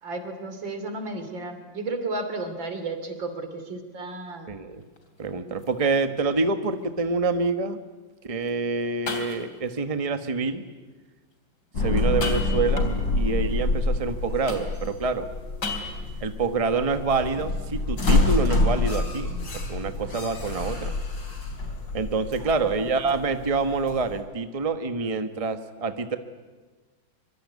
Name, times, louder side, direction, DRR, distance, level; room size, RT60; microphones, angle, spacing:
voice 1, 0.0-4.6 22.4-22.8, right 2 dB, 80° right, 8 dB, 3.6 m, -33 dB
voice 2, 4.5-4.8 5.2-7.8 8.2-10.6 11.8-12.9 13.1-15.3 16.2-19.3 19.7-20.9 21.9-26.2, right 4 dB, 20° right, 8 dB, 1.2 m, -26 dB
sound 1, 4.7-5.1 5.6-5.7 6.4-6.5 8.5-8.6 9.1-9.7 12.0-13.2 14.5-15.0 15.6-16.2, left 3 dB, 60° left, 4.0 m, -34 dB
sound 2, 11.7-24.2, left 2 dB, 75° left, 4.3 m, -27 dB
24.5 x 24.0 x 9.5 m, 1.3 s
omnidirectional pair, 2.0 m